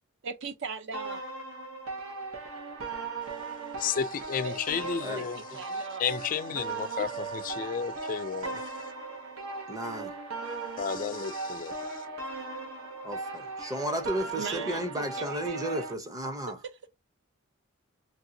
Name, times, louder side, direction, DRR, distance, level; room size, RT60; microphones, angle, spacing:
voice 1, 0.2-1.2 4.4-6.0 7.0-7.1 14.4-15.9 16.6-16.9, right 5 dB, 60° right, 0.6 m, -39 dB
sound 1, 0.9-15.9, right 3 dB, 75° right, 1.1 m, -37 dB
voice 2, 3.8-8.9 10.8-12.1, left 7 dB, 40° left, 0.3 m, -33 dB
voice 3, 9.7-10.2 13.0-16.6, right 1 dB, 15° right, 0.6 m, -34 dB
3.2 x 2.6 x 2.6 m
head